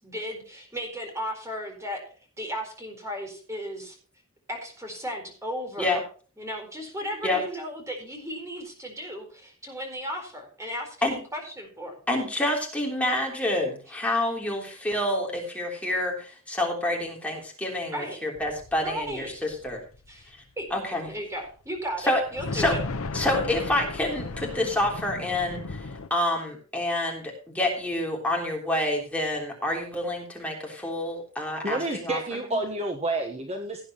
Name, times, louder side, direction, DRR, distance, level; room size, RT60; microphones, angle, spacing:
voice 1, 0.0-4.0 4.5-6.0 6.4-12.0 17.9-18.2 18.8-19.3 20.1-20.3 20.6-20.7 21.1-22.8, equal, 15° right, 3 dB, 4.3 m, -35 dB
voice 2, 12.1-19.8 20.7-21.1 22.1-22.2 22.5-22.8 23.1-32.4, left 1 dB, 5° left, -1 dB, 3.5 m, -28 dB
sound 1, 18.3-21.1 21.4-21.5 22.1-26.1, left 3 dB, 70° left, 0.8 m, -35 dB
voice 3, 31.6-33.8, right 2 dB, 30° right, 3 dB, 1.3 m, -29 dB
17.5 x 9.7 x 3.1 m, 0.39 s
head